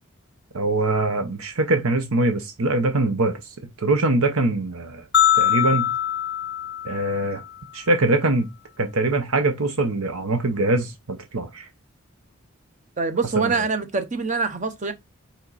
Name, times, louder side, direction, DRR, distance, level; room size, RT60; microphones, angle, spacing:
voice 1, 0.5-3.4 3.8-5.0 5.3-5.9 6.8-7.4 7.7-8.5 8.8-11.7 13.4-13.5, right 2 dB, 75° right, 0.9 m, -23 dB
sound 1, 5.1-7.5, left 10 dB, 50° left, 0.5 m, -22 dB
voice 2, 13.0-14.9, right 4 dB, 35° right, 0.8 m, -24 dB
5.5 x 4.4 x 4.1 m
head